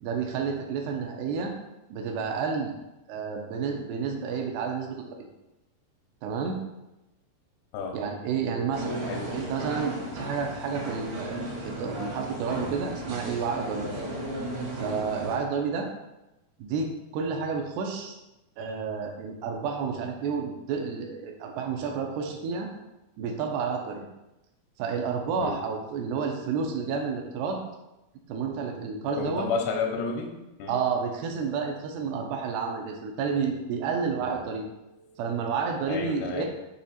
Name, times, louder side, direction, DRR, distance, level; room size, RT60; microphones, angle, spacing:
voice 1, 0.0-1.5 1.9-2.7 3.1-5.3 6.2-6.6 7.9-9.1 9.3-13.9 14.8-15.9 16.6-18.2 18.6-22.7 23.2-24.0 24.8-27.6 28.3-29.5 30.7-34.7 35.2-36.5, right 5 dB, 85° right, 2 dB, 2.8 m, -30 dB
sound 1, 8.7-15.3, right 1 dB, 70° right, 1.1 m, -35 dB
voice 2, 29.2-30.3 30.6-30.7 34.1-34.4 34.8-35.2 35.9-36.5, left 5 dB, 85° left, 2 dB, 2.9 m, -31 dB
7.4 x 3.1 x 4.2 m, 0.96 s
omnidirectional pair, 4.8 m